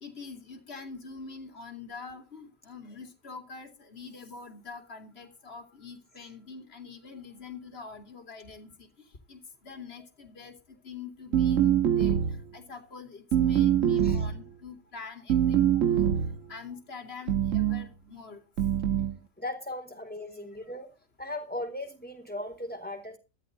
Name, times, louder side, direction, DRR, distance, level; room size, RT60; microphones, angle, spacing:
voice 1, 0.0-8.9 9.3-12.2 12.5-18.4, left 5 dB, 45° left, 3.0 m, -45 dB
sound 1, 11.3-12.5 13.3-14.4 15.3-16.4 17.3-17.8 18.6-19.2, right 9 dB, 65° right, 1.4 m, -24 dB
voice 2, 19.4-20.9 21.2-23.2, left 1 dB, 5° left, 4.1 m, -37 dB
15.0 x 13.5 x 3.9 m
omnidirectional pair, 1.5 m